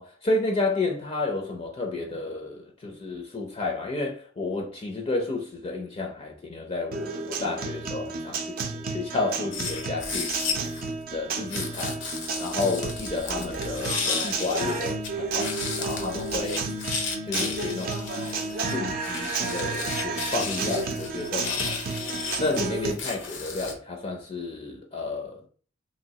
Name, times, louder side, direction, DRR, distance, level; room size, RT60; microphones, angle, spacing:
voice 1, 0.0-10.6 11.1-12.0 12.4-16.7 17.2-18.0 18.5-22.0 22.4-25.5, left 3 dB, 30° left, 0.5 m, -31 dB
Guitar, 6.9-22.9, right 4 dB, 50° right, 0.5 m, -32 dB
sound 1, 9.5-10.9 11.5-15.1 15.4-23.7, left 5 dB, 75° left, 0.7 m, -34 dB
3.0 x 2.8 x 2.8 m
head